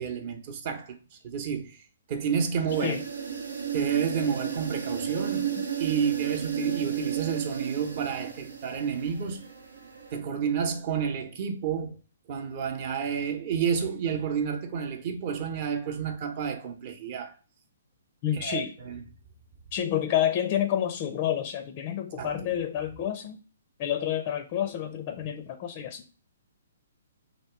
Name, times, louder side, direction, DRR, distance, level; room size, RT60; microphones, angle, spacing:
voice 1, 0.0-1.8 2.1-3.0 3.7-5.5 5.8-9.4 10.1-12.0 12.3-17.3 18.3-19.0 22.2-22.5, right 7 dB, 40° right, 0.8 m, -30 dB
sound 1, 2.7-10.2, right 8 dB, 90° right, 0.9 m, -34 dB
voice 2, 18.2-18.7 19.7-23.4 23.8-26.0, left 10 dB, 35° left, 0.4 m, -29 dB
3.0 x 2.9 x 4.4 m
hypercardioid pair, 140°, 0 cm